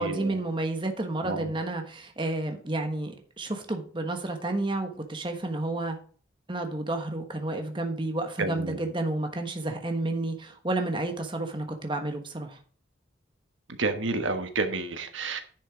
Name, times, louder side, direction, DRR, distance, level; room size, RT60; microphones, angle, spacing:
voice 1, 0.0-6.0 6.5-12.6, right 2 dB, 25° right, 5 dB, 1.2 m, -31 dB
voice 2, 8.4-8.8 13.8-15.4, right 3 dB, 85° right, 7 dB, 1.3 m, -29 dB
10.5 x 6.4 x 4.9 m, 0.43 s
head